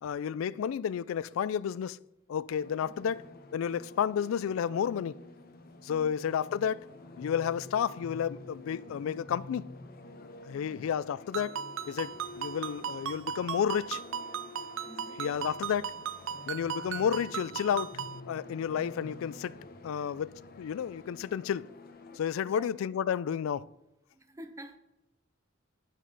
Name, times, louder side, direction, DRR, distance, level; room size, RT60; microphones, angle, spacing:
voice 1, 0.0-2.0 2.3-3.3 3.5-5.2 5.8-6.9 7.2-9.7 10.4-11.6 11.9-14.0 15.2-15.9 16.5-17.9 18.3-19.5 19.8-21.7 22.2-23.7, left 8 dB, 75° left, 0.3 m, -31 dB
sound 1, 2.6-22.2, left 2 dB, 45° left, 0.8 m, -49 dB
voice 2, 2.8-3.1 5.9-6.1 14.6-15.2 22.1-22.7 24.1-24.8, equal, 15° right, 0.5 m, -50 dB
Ringtone, 11.3-18.2, right 8 dB, 65° right, 0.4 m, -38 dB
10.0 x 6.3 x 3.9 m
head